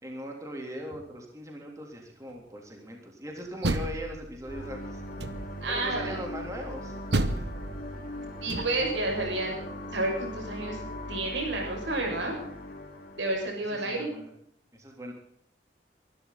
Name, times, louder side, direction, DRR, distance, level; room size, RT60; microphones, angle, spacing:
voice 1, 0.0-5.0 5.7-6.9 13.7-14.3 14.7-15.1, equal, 15° right, 1 dB, 3.3 m, -39 dB
Door, 3.4-4.6 5.2-5.8 7.1-9.0, right 2 dB, 65° right, 1.1 m, -31 dB
sound 1, 4.5-13.5, left 1 dB, 45° left, 4.2 m, -40 dB
voice 2, 5.6-6.2 8.4-9.6 9.9-10.8 11.1-12.3 13.2-14.1, right 2 dB, 85° right, 1 dB, 6.5 m, -30 dB
23.5 x 12.5 x 4.1 m, 0.70 s
head